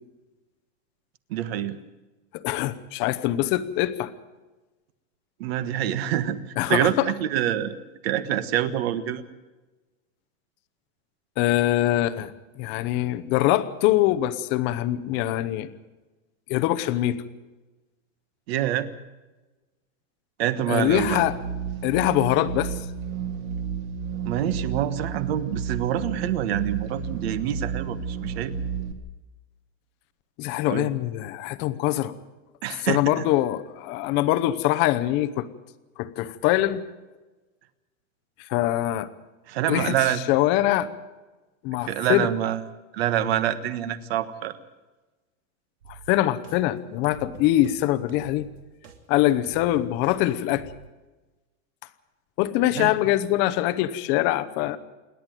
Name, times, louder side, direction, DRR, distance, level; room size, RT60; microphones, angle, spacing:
voice 1, 1.3-1.8 5.4-6.4 6.7-7.8 8.0-9.2 18.5-18.9 20.4-21.2 24.2-28.5 30.7-30.9 32.6-33.2 39.5-40.2 41.8-42.6 42.9-44.6 52.7-52.9, right 11 dB, 50° right, 13 dB, 1.5 m, -26 dB
voice 2, 2.3-4.1 6.6-6.9 11.4-12.3 12.6-15.7 16.5-17.2 20.7-21.3 21.8-22.8 30.4-32.1 32.8-35.5 36.0-36.8 38.5-39.1 39.7-40.0 40.3-40.9 41.6-42.3 45.9-48.5 49.1-50.7 52.4-54.8, left 14 dB, 30° left, 13 dB, 0.9 m, -23 dB
sound 1, 20.9-28.9, right 7 dB, 30° right, 1.9 m, -32 dB
sound 2, 45.8-46.6 47.0-47.8 48.1-50.2 50.5-50.9, right 6 dB, 65° right, 3.1 m, -46 dB
27.5 x 11.0 x 9.1 m, 1.2 s
supercardioid pair, 170°, 39 cm